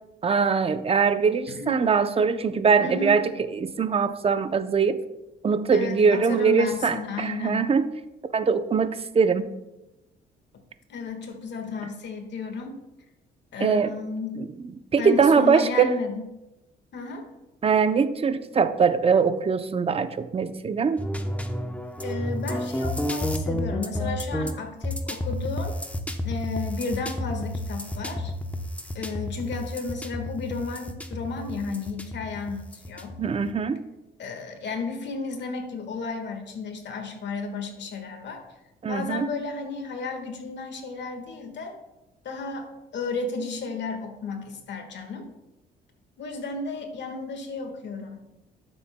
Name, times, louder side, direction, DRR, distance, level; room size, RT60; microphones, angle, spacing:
voice 1, 0.2-5.0 5.4-7.9 8.3-9.5 13.6-13.9 14.4-14.5 14.9-15.9 17.6-21.0 33.2-33.8 38.8-39.3, right 5 dB, 30° right, 11 dB, 0.6 m, -22 dB
voice 2, 1.5-1.8 2.8-3.2 5.7-7.7 10.9-12.8 13.5-14.4 15.0-16.2 16.9-17.3 22.0-25.8 26.2-28.3 28.9-33.1 34.2-38.4 38.9-41.7 42.2-45.3 46.2-48.3, left 4 dB, 65° left, 5 dB, 1.6 m, -33 dB
sound 1, 21.0-33.5, left 1 dB, 5° left, 0.8 m, -31 dB
12.0 x 7.1 x 2.2 m, 0.96 s
cardioid pair, 90°, 20 cm